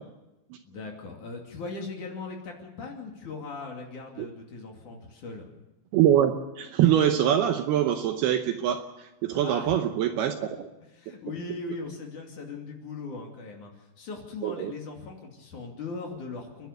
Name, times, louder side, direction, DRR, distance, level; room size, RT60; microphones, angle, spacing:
voice 1, 0.7-5.5 9.4-9.8 10.1-10.5 10.9-16.7, left 3 dB, 50° left, 1 dB, 3.7 m, -39 dB
voice 2, 5.9-10.7 14.4-14.7, right 10 dB, 75° right, 6 dB, 2.5 m, -24 dB
29.5 x 11.5 x 8.0 m, 1.0 s
omnidirectional pair, 5.2 m